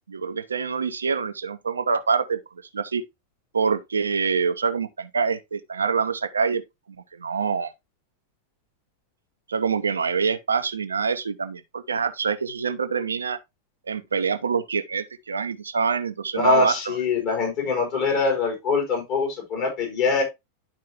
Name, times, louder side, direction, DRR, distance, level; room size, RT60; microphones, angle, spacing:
voice 1, 0.1-2.4 2.7-3.0 3.5-6.6 7.1-7.7 9.5-13.4 13.9-17.0, right 5 dB, 75° right, 0.7 m, -25 dB
voice 2, 16.3-20.2, left 4 dB, 45° left, 4.1 m, -23 dB
11.0 x 4.7 x 2.9 m
figure-of-eight pair, 90°, 0 cm